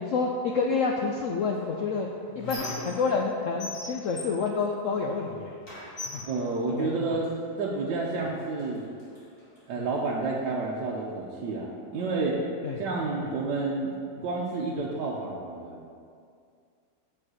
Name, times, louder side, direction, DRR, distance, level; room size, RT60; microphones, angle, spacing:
voice 1, 0.1-2.1 2.4-5.6 6.1-6.2 6.8-7.2 9.8-9.9 12.6-12.8 13.2-13.3, left 4 dB, 85° left, 1 dB, 0.7 m, -28 dB
Squeak, 1.5-3.3 3.6-5.3 5.6-7.3 8.1-8.2 8.6-9.6, left 2 dB, 30° left, 2.1 m, -40 dB
voice 2, 6.2-7.3 7.6-8.9 9.7-12.4 12.8-13.9 14.2-15.9, right 3 dB, 70° right, -4 dB, 1.4 m, -30 dB
7.5 x 4.9 x 6.3 m, 2.3 s
omnidirectional pair, 2.0 m